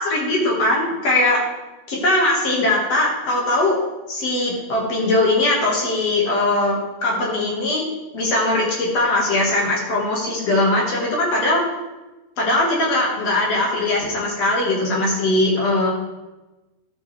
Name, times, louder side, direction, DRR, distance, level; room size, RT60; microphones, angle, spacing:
voice 1, 0.0-1.4 1.9-3.8 4.1-7.9 8.1-11.6 12.4-15.9, left 2 dB, 50° left, -2 dB, 2.0 m, -20 dB
13.0 x 7.4 x 3.3 m, 1.1 s
omnidirectional pair, 5.0 m